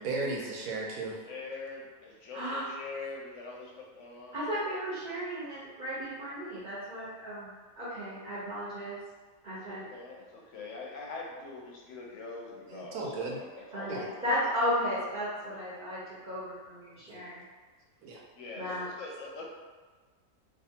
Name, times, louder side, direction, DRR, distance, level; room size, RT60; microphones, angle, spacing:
voice 1, 0.0-1.2 12.7-13.4 13.9-14.0 17.1-17.2 18.0-18.2, right 3 dB, 75° right, -2 dB, 1.0 m, -35 dB
voice 2, 1.2-4.4 7.9-8.2 9.6-14.6 18.4-19.5, left 3 dB, 70° left, -1 dB, 0.8 m, -43 dB
voice 3, 2.3-2.6 4.3-7.5 7.8-9.0 9.4-9.9 13.7-17.4 18.6-18.9, equal, 45° right, -10 dB, 0.7 m, -34 dB
2.5 x 2.5 x 2.7 m, 1.4 s
omnidirectional pair, 1.5 m